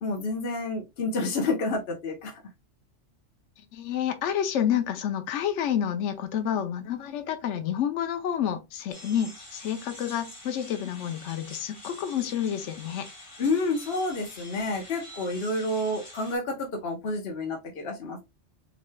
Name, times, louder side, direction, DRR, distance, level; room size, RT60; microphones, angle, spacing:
voice 1, 0.0-2.4 13.4-18.2, left 2 dB, 55° left, 1.1 m, -29 dB
voice 2, 3.6-13.1, left 9 dB, 75° left, 0.9 m, -29 dB
sound 1, 8.9-16.4, left 1 dB, 25° left, 1.9 m, -46 dB
6.5 x 3.2 x 2.2 m
omnidirectional pair, 1.3 m